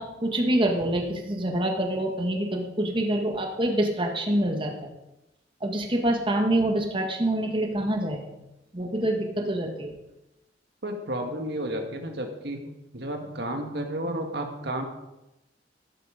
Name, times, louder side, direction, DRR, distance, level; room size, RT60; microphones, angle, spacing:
voice 1, 0.0-4.9 5.6-8.4 8.7-9.9, right 1 dB, 30° right, 2 dB, 1.7 m, -26 dB
voice 2, 10.8-12.6 12.9-14.8, right 1 dB, 65° right, 4 dB, 1.7 m, -32 dB
12.5 x 12.0 x 5.1 m, 0.93 s
head